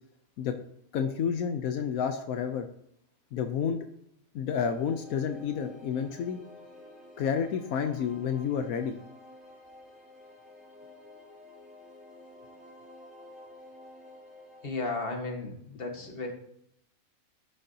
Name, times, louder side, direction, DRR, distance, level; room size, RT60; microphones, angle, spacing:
voice 1, 0.9-2.7 3.3-3.9 4.3-6.4 7.2-9.0, left 7 dB, 85° left, 6 dB, 1.1 m, -30 dB
sound 1, 4.6-14.7, left 1 dB, ahead, 3.2 m, -51 dB
voice 2, 14.6-16.3, left 3 dB, 40° left, 1 dB, 1.7 m, -34 dB
12.5 x 6.7 x 2.8 m, 0.73 s
omnidirectional pair, 1.5 m